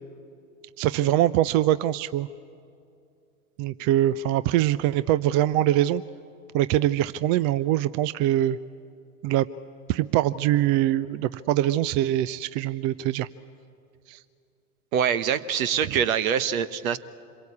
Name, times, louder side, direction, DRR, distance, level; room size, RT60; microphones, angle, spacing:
voice 1, 0.8-2.3 3.6-6.0 6.5-8.6 9.2-9.5 9.9-13.3 14.1-14.2, right 13 dB, 40° right, 17 dB, 0.6 m, -23 dB
voice 2, 14.9-17.0, right 8 dB, 65° right, 15 dB, 1.2 m, -24 dB
26.5 x 22.5 x 8.5 m, 2.5 s
hypercardioid pair, 85°, 44 cm